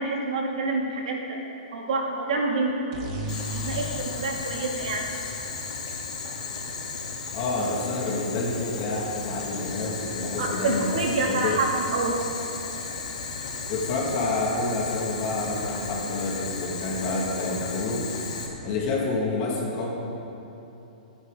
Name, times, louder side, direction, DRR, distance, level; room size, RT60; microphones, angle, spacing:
voice 1, 0.0-1.4 1.7-2.9 3.5-5.1 10.4-12.2, right 3 dB, 55° right, -1 dB, 2.5 m, -27 dB
sound 1, 2.9-6.6, equal, 30° right, 1.9 m, -37 dB
Boiling, 3.3-18.5, left 4 dB, 55° left, 3.0 m, -35 dB
voice 2, 7.3-11.6 13.7-18.1 18.6-19.9, left 2 dB, 25° left, -3 dB, 2.1 m, -28 dB
26.0 x 9.8 x 3.9 m, 3.0 s
hypercardioid pair, 180°, 5 cm